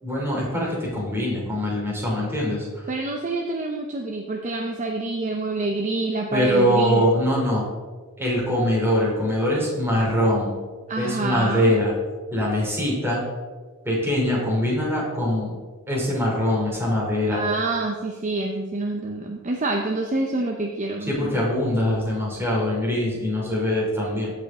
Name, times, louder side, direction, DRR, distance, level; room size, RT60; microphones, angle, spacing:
voice 1, 0.0-2.7 6.3-7.6 8.2-10.6 11.0-11.9 12.3-13.2 13.8-15.5 15.9-17.4 21.1-24.3, left 1 dB, 10° right, -5 dB, 2.8 m, -23 dB
voice 2, 2.9-7.1 10.9-11.7 17.3-21.4, right 2 dB, 35° right, 2 dB, 0.6 m, -27 dB
14.5 x 5.1 x 3.6 m, 1.4 s
head